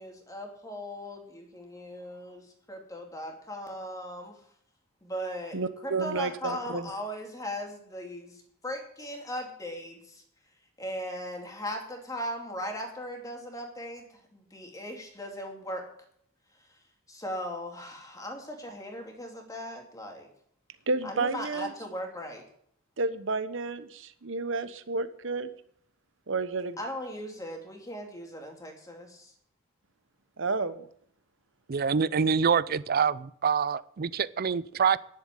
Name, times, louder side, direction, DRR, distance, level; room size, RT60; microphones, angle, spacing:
voice 1, 0.0-4.4 5.0-5.6 5.8-10.2 10.8-14.0 14.3-15.8 17.1-20.3 21.0-22.4 26.8-29.3, equal, 15° left, 2.6 m, -38 dB
voice 2, 5.5-6.9 20.9-21.7 23.0-25.5 26.3-26.8 30.4-30.9, right 3 dB, 65° right, 1.0 m, -31 dB
voice 3, 31.7-35.0, right 6 dB, 45° right, 0.5 m, -26 dB
10.5 x 7.5 x 9.1 m
head